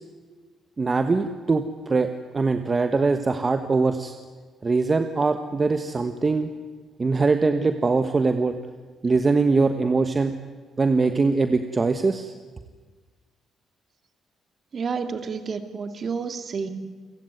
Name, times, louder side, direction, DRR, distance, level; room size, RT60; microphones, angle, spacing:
voice 1, 0.8-4.1 4.6-6.5 7.0-8.5 9.0-10.3 10.8-12.3, right 3 dB, 30° right, 8 dB, 1.4 m, -22 dB
voice 2, 14.7-16.7, right 5 dB, 45° right, 8 dB, 2.4 m, -30 dB
29.0 x 16.0 x 9.4 m, 1.4 s
cardioid pair, 90°, 0 cm